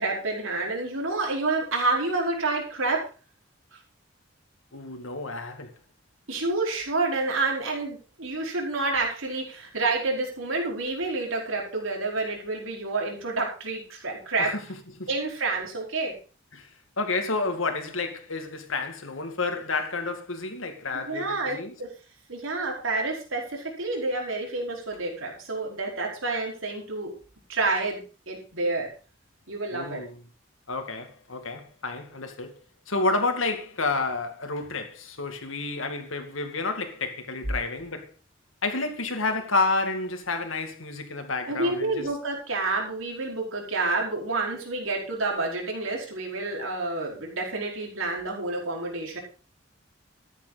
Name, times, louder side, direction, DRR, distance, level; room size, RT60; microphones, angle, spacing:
voice 1, 0.0-3.0 6.3-14.5 15.1-16.1 20.9-21.9 22.3-27.1 27.5-28.9 29.5-30.0 41.4-49.2, right 3 dB, 85° right, 4.7 m, -29 dB
voice 2, 4.7-5.7 14.4-14.6 15.0-15.1 16.5-16.7 17.0-21.7 29.7-30.2 30.7-32.6 32.9-38.1 38.6-42.1, left 3 dB, 80° left, 2.3 m, -30 dB
13.5 x 10.5 x 4.1 m
head